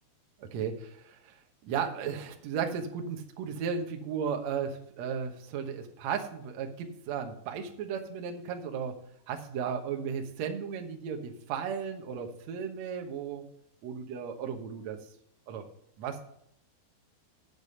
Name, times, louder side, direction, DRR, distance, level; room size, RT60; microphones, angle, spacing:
voice 1, 0.4-1.4 1.6-9.0 9.3-13.4 13.8-15.0 15.5-15.6 16.0-16.2, right 7 dB, 85° right, 4 dB, 1.5 m, -35 dB
8.2 x 7.0 x 6.7 m, 0.73 s
omnidirectional pair, 5.0 m